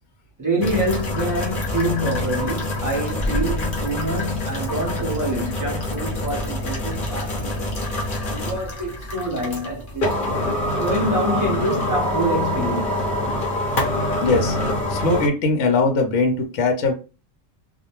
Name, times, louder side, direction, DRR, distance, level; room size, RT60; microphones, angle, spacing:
voice 1, 0.4-7.8 8.3-10.1 10.8-13.2, right 1 dB, 20° right, 0.6 m, -26 dB
sound 1, 0.6-15.3, left 1 dB, 45° left, 0.9 m, -25 dB
voice 2, 14.2-14.6 14.9-16.9, left 3 dB, 70° left, 0.9 m, -20 dB
2.3 x 2.1 x 2.9 m
omnidirectional pair, 1.3 m